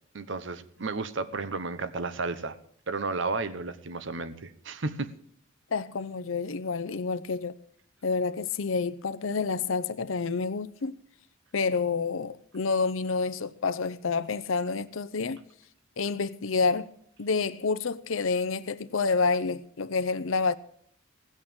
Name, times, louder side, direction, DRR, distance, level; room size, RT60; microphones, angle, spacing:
voice 1, 0.1-2.6 2.9-5.1, right 3 dB, 65° right, 1.0 m, -33 dB
voice 2, 5.7-7.5 8.0-11.0 11.5-15.4 16.0-16.9 17.2-20.6, left 4 dB, 85° left, 0.7 m, -28 dB
17.0 x 6.5 x 8.8 m
head